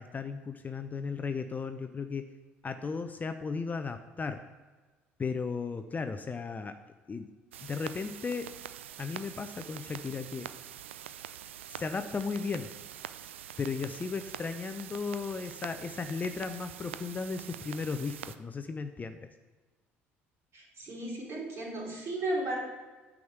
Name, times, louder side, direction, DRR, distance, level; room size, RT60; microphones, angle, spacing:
voice 1, 0.0-2.3 2.6-4.5 5.2-6.8 7.1-7.3 7.6-8.5 9.0-10.5 11.7-12.7 13.6-19.3, left 5 dB, 25° left, 8 dB, 0.6 m, -35 dB
sound 1, 7.5-18.4, right 10 dB, 75° right, 0.3 m, -45 dB
voice 2, 20.5-22.6, right 1 dB, 40° right, -2 dB, 3.2 m, -34 dB
9.4 x 5.0 x 6.0 m, 1.3 s
figure-of-eight pair, 55°, 7 cm